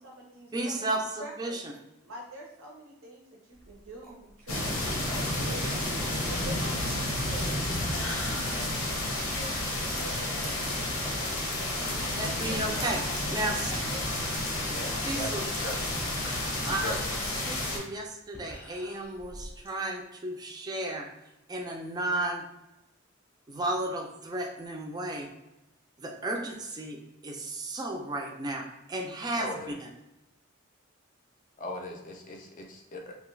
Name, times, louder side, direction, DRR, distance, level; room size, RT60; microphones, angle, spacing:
voice 1, 0.0-1.6 2.0-5.9 6.3-11.3 12.5-13.2 13.5-15.1, right 1 dB, 70° right, -2 dB, 0.6 m, -45 dB
voice 2, 0.5-1.7 12.2-13.0 13.3-13.7 15.0-15.4 16.7-17.0 17.4-21.1 21.5-22.4 23.5-25.3 26.0-27.0 27.2-28.6 28.9-29.5 29.8-29.9, right 2 dB, 20° right, 1 dB, 0.4 m, -33 dB
sound 1, 3.5-13.8 14.1-14.2 14.5-14.6 15.3-19.8, equal, 10° left, 0.7 m, -48 dB
sound 2, 4.5-17.8, left 1 dB, 80° left, 0.7 m, -31 dB
voice 3, 14.7-15.8 16.8-17.0 29.4-29.8 31.6-33.1, left 1 dB, 40° left, 1 dB, 0.5 m, -39 dB
2.8 x 2.3 x 3.1 m, 0.93 s
head